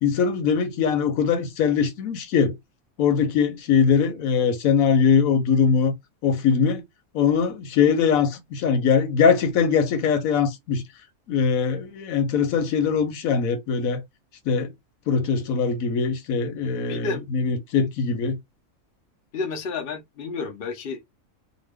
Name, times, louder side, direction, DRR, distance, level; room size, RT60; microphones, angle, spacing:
voice 1, 0.0-2.6 3.0-5.9 6.2-6.8 7.1-10.8 11.3-14.0 14.5-14.7 15.1-18.4, left 6 dB, 90° left, 1.1 m, -21 dB
voice 2, 16.9-17.2 19.3-21.0, left 4 dB, 50° left, 0.8 m, -30 dB
2.9 x 2.2 x 3.3 m
omnidirectional pair, 1.4 m